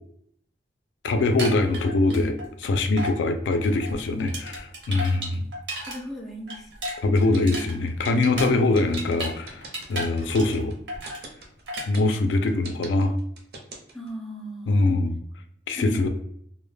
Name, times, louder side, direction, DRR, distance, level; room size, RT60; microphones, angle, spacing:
voice 1, 1.0-5.5 7.0-10.7 11.9-13.1 14.7-15.2 15.7-16.1, left 2 dB, 85° left, 7 dB, 0.3 m, -23 dB
sound 1, 1.2-2.7 3.0-3.2 3.5-6.0 6.3-9.4 9.6-10.6 10.9-11.2 11.7-11.9, right 1 dB, 85° right, 0.8 m, -34 dB
voice 2, 5.9-6.6 7.2-7.6 13.9-14.7 15.8-16.1, equal, ahead, -2 dB, 0.3 m, -35 dB
sound 2, 7.2-14.1, right 3 dB, 60° right, 0.5 m, -41 dB
2.1 x 2.0 x 3.1 m, 0.67 s
head